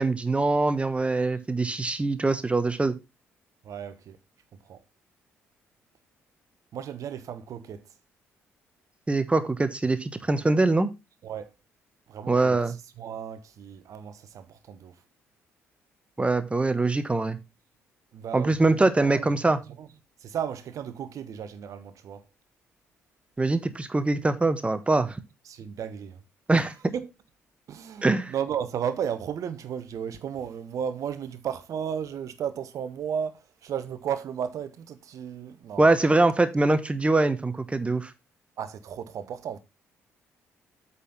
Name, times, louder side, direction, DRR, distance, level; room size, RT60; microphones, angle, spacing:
voice 1, 0.0-2.9 9.1-10.9 12.3-12.7 16.2-17.4 18.3-19.6 23.4-25.2 26.5-26.7 28.0-28.3 35.8-38.1, right 2 dB, 15° right, 1.1 m, -23 dB
voice 2, 3.6-4.2 4.7-4.8 6.7-7.8 11.2-11.5 12.1-14.9 18.1-19.9 20.2-22.2 25.5-26.2 26.5-26.6 26.9-27.1 27.7-35.9 38.6-39.6, right 8 dB, 50° right, 1.0 m, -34 dB
8.3 x 4.2 x 5.6 m
figure-of-eight pair, 45°, 7 cm